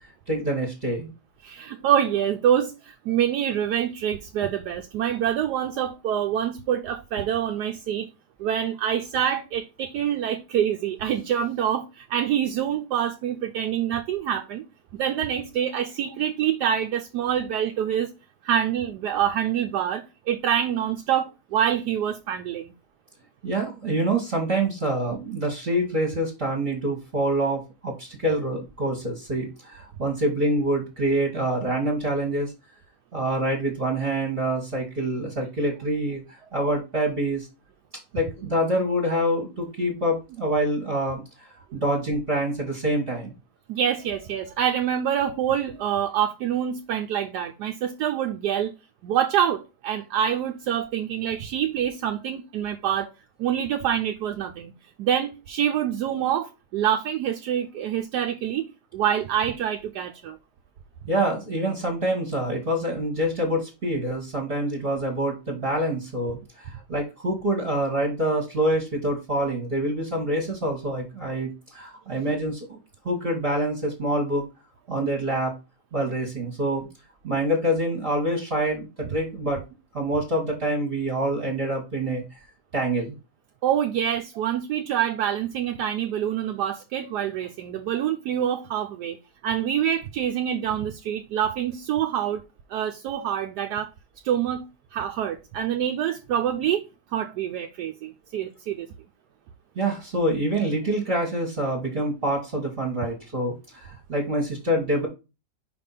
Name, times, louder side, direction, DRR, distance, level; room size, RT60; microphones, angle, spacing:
voice 1, 0.3-1.1 23.4-32.5 33.1-37.5 38.1-43.3 61.1-72.8 73.0-74.4 74.9-75.6 75.9-76.9 77.2-79.6 79.9-82.4 82.7-83.2 99.7-105.1, right 1 dB, 35° right, 1.5 m, -26 dB
voice 2, 1.4-8.1 8.4-14.6 14.9-18.1 18.4-22.7 43.7-48.7 49.0-53.1 53.4-54.7 55.0-58.7 58.9-60.4 83.6-89.2 89.4-92.4 92.7-93.9 94.2-94.6 94.9-96.8 97.1-98.9, right 9 dB, 75° right, 1.1 m, -26 dB
5.2 x 3.4 x 5.6 m
omnidirectional pair, 1.8 m